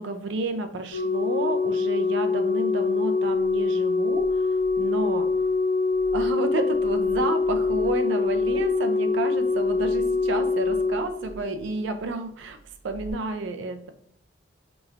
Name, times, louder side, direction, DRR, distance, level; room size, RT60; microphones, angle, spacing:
voice 1, 0.0-5.3 6.1-12.6 12.8-13.9, right 3 dB, 65° right, 8 dB, 0.4 m, -31 dB
Organ, 0.9-11.8 12.9-13.1, left 4 dB, 55° left, 0.6 m, -24 dB
3.2 x 3.0 x 2.4 m, 0.69 s
head